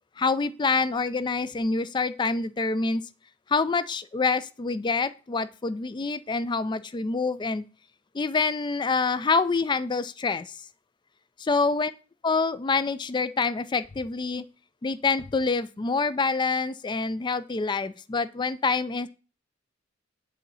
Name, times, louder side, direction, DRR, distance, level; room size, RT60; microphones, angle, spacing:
voice 1, 0.2-3.0 3.5-7.6 8.1-10.6 11.4-11.9 12.2-14.4 14.8-19.1, left 4 dB, 25° left, 15 dB, 0.4 m, -26 dB
7.6 x 3.9 x 5.5 m, 0.35 s
head